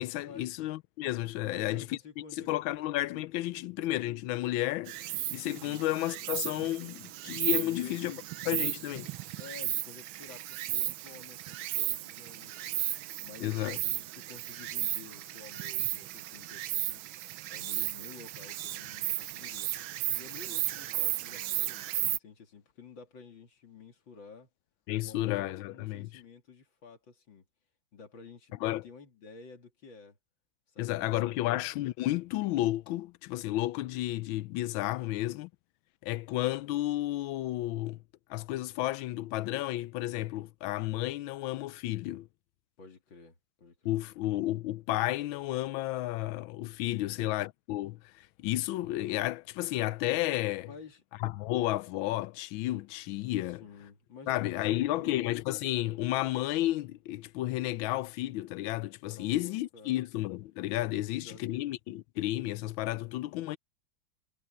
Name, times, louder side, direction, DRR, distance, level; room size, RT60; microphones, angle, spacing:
voice 1, 0.0-2.0 2.3-5.0 5.3-8.1 8.5-9.1 13.4-13.8 24.9-26.1 28.6-28.8 30.8-35.5 36.0-38.0 38.3-42.3 43.8-50.7 51.2-53.6 54.3-63.6, left 16 dB, 90° left, 1.4 m, -32 dB
voice 2, 1.4-2.8 3.5-3.7 5.6-5.8 7.6-8.2 9.4-12.8 13.2-17.0 17.5-24.5 25.0-27.4 27.9-28.6 28.8-30.2 30.7-31.5 34.9-35.3 42.8-44.0 47.0-47.3 50.3-51.0 53.5-55.2 59.0-60.0 61.0-61.6, left 5 dB, 75° left, 3.3 m, -51 dB
Insect, 4.9-22.2, right 14 dB, 90° right, 1.5 m, -35 dB
omnidirectional pair, 2.1 m